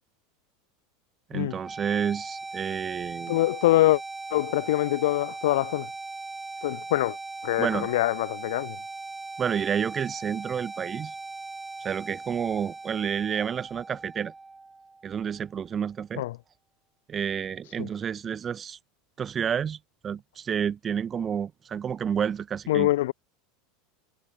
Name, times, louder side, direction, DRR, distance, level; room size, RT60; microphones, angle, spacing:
voice 1, 1.3-3.4 7.6-7.9 9.4-11.1 11.8-14.3 15.0-16.3 17.1-18.8 19.2-19.8 20.0-22.9, right 7 dB, 30° right, 0.7 m, -30 dB
sound 1, 1.5-15.4, right 3 dB, 15° right, 1.8 m, -39 dB
voice 2, 3.3-4.0 4.3-5.9 6.6-7.2 7.4-8.8 16.2-16.3 17.8-17.9 22.7-23.1, left 16 dB, 70° left, 0.6 m, -24 dB
hypercardioid pair, 85°, 0 cm